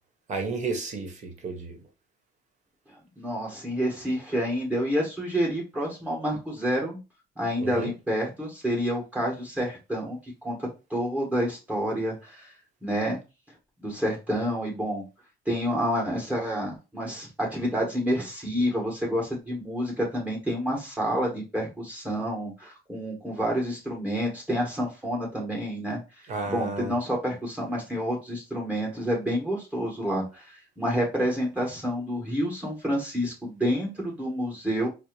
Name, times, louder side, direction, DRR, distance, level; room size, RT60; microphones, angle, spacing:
voice 1, 0.3-1.8 7.6-7.9 26.3-26.9, right 3 dB, 45° right, 1.1 m, -32 dB
voice 2, 3.2-7.0 7.4-12.5 12.8-13.2 13.8-15.0 15.5-26.0 26.5-34.9, equal, 10° right, 1.9 m, -28 dB
4.4 x 2.0 x 3.1 m
cardioid pair, 110°, 17 cm